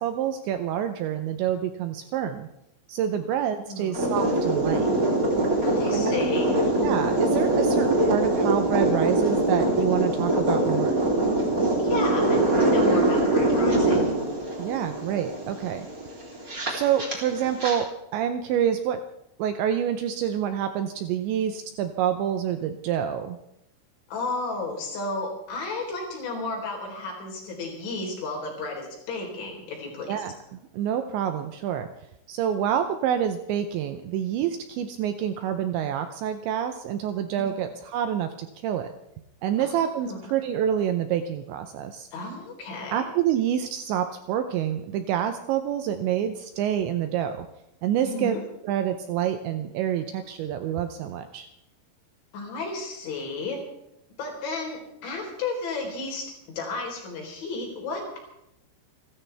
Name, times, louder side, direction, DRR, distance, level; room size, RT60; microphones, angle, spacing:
voice 1, 0.0-2.5 2.9-4.9 5.9-6.2 6.8-11.0 14.6-15.9 16.7-19.0 19.4-23.4 30.1-31.9 32.3-38.9 39.4-42.1 42.9-47.5 47.8-48.4 48.6-51.5, right 9 dB, 80° right, 8 dB, 2.7 m, -27 dB
voice 2, 3.7-4.0 5.6-6.6 11.8-14.1 24.1-30.2 37.4-37.7 39.6-40.2 42.1-43.0 48.0-48.4 52.3-53.6 54.2-56.3 56.6-58.2, left 3 dB, 65° left, 0 dB, 6.2 m, -33 dB
sound 1, 3.9-17.8, right 1 dB, 20° right, 3.1 m, -23 dB
29.0 x 13.5 x 3.4 m, 0.82 s
omnidirectional pair, 5.8 m